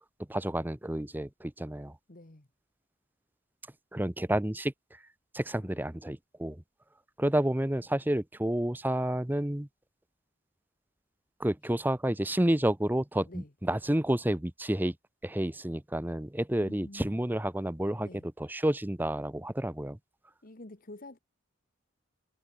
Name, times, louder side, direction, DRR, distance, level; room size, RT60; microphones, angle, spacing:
voice 1, 0.3-2.0 3.9-5.0 5.3-6.6 7.2-9.7 11.4-14.9 15.2-20.0, right 1 dB, 10° right, 0.7 m, -30 dB
voice 2, 2.1-2.5 5.5-5.8 13.2-13.5 16.6-17.2 18.0-18.3 20.4-21.2, left 1 dB, 45° left, 1.4 m, -48 dB
head